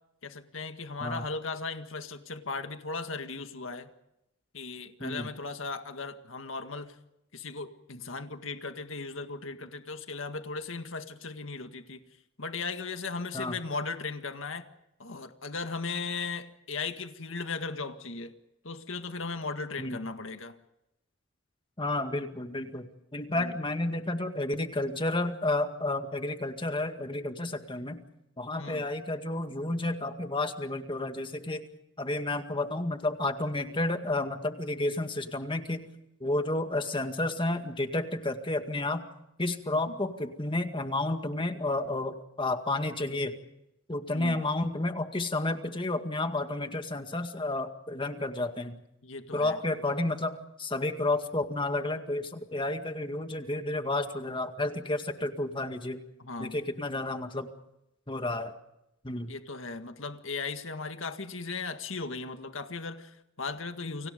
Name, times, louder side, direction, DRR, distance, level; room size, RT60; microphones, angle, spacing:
voice 1, 0.2-3.9 4.5-7.0 7.3-12.0 12.4-14.7 15.0-18.3 18.6-20.6 23.3-23.5 28.6-28.8 44.1-44.4 49.0-49.6 56.2-56.5 59.3-64.1, left 4 dB, 70° left, 7 dB, 1.9 m, -37 dB
voice 2, 21.8-28.0 28.4-31.7 32.0-35.8 36.2-39.0 39.4-43.4 43.9-48.8 49.3-56.0 56.4-57.5 58.1-58.5 59.0-59.3, left 2 dB, 25° left, 7 dB, 2.0 m, -31 dB
30.0 x 25.0 x 5.3 m, 0.86 s
head